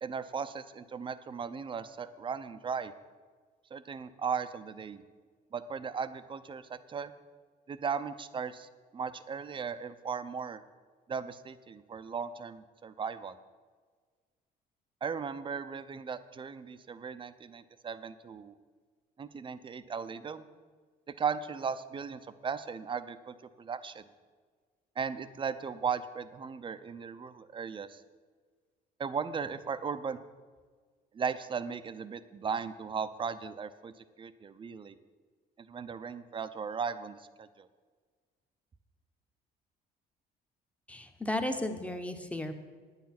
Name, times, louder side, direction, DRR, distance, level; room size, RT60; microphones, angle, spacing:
voice 1, 0.0-2.9 3.7-5.0 5.5-7.1 7.7-10.6 11.1-13.4 15.0-18.5 19.2-20.5 21.2-24.0 25.0-28.0 29.0-30.2 31.1-35.0 35.7-37.7, right 6 dB, 30° right, 12 dB, 0.6 m, -37 dB
voice 2, 40.9-42.5, left 1 dB, 10° left, 6 dB, 1.0 m, -34 dB
9.7 x 9.6 x 5.9 m, 1.5 s
cardioid pair, 110°, 17 cm